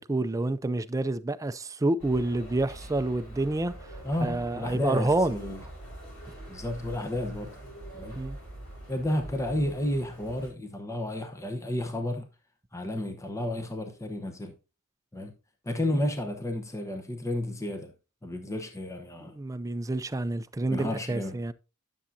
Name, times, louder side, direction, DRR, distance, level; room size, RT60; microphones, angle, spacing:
voice 1, 0.0-3.7 4.2-5.4 6.3-6.4 8.2-8.4 19.2-21.5, right 2 dB, 15° right, 0.4 m, -28 dB
sound 1, 2.0-10.5, right 1 dB, 70° left, 5.8 m, -44 dB
voice 2, 4.0-5.6 6.5-7.5 7.9-8.2 8.9-12.3 12.7-14.5 15.1-15.3 15.6-17.9 18.2-19.3 20.7-21.4, left 1 dB, 15° left, 0.9 m, -31 dB
10.0 x 7.0 x 2.7 m
head